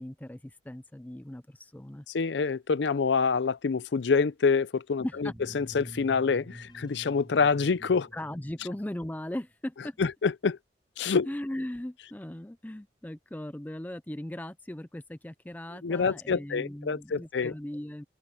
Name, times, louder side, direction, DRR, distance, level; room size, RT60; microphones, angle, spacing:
voice 1, 0.0-2.1 5.0-5.3 8.1-10.0 11.3-18.0, left 1 dB, 10° left, 0.4 m, -38 dB
voice 2, 2.1-5.3 5.5-8.1 10.0-10.6 11.0-11.3 15.8-17.5, left 5 dB, 75° left, 0.5 m, -26 dB
sound 1, 5.1-9.2, right 1 dB, 15° right, 1.7 m, -47 dB
sound 2, 6.7-7.7, left 5 dB, 25° left, 6.9 m, -69 dB
open air
head